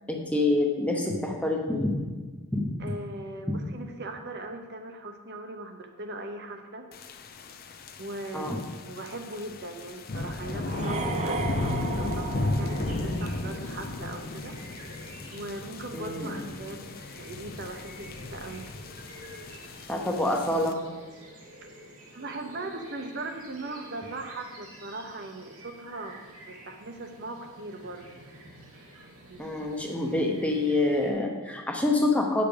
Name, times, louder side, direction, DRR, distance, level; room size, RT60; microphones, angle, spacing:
voice 1, 0.1-2.0 2.5-2.7 3.5-3.6 8.3-8.6 15.9-16.5 19.9-20.8 29.4-32.4, left 2 dB, 5° left, 1 dB, 0.8 m, -26 dB
voice 2, 2.8-6.9 8.0-14.5 15.3-18.7 22.1-28.2 29.3-29.5 29.8-29.9, right 2 dB, 50° right, 4 dB, 0.8 m, -39 dB
sound 1, 6.9-20.7, left 2 dB, 40° left, 0.6 m, -35 dB
sound 2, 10.6-13.6, right 4 dB, 30° right, 0.5 m, -35 dB
sound 3, 12.6-31.1, right 1 dB, 90° right, 2.4 m, -49 dB
8.8 x 6.9 x 5.1 m, 1.3 s
head